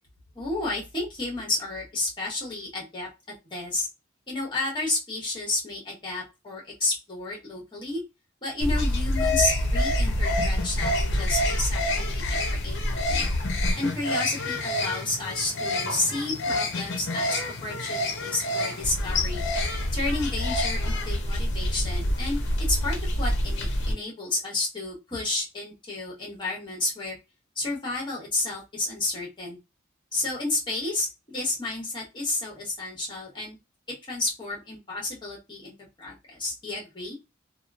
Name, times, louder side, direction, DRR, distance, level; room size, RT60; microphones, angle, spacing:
voice 1, 0.3-3.1 3.4-3.9 4.3-8.0 8.4-13.3 13.8-19.4 19.9-22.4 22.7-27.2 27.6-29.6 30.1-33.6 34.1-37.2, left 2 dB, 25° left, -3 dB, 1.1 m, -31 dB
sound 1, 8.6-23.9, left 1 dB, 60° left, 0.7 m, -27 dB
2.9 x 2.4 x 2.3 m, 0.26 s
head